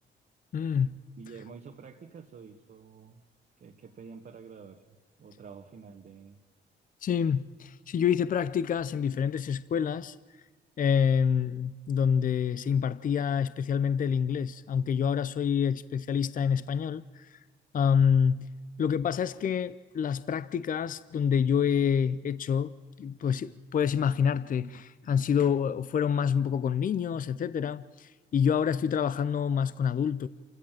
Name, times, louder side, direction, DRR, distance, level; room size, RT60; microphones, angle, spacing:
voice 1, 0.5-0.9 7.0-10.2 10.8-17.4 17.7-18.5 18.8-30.3, left 7 dB, 45° left, 0.6 m, -27 dB
voice 2, 1.2-3.2 3.6-6.4, right 5 dB, 50° right, 1.6 m, -48 dB
27.5 x 16.0 x 7.5 m
cardioid pair, 90°, 20 cm